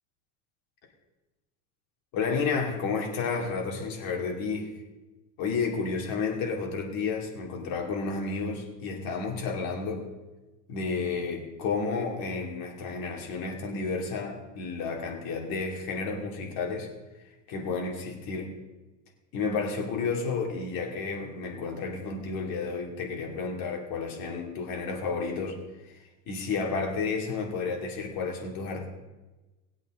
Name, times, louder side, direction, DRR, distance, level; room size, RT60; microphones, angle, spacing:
voice 1, 2.1-4.7 5.4-10.0 10.7-16.9 17.5-18.5 19.3-25.6 26.3-28.9, left 4 dB, 65° left, 1 dB, 2.8 m, -31 dB
19.5 x 8.2 x 3.8 m, 1.1 s
supercardioid pair, 120°, 39 cm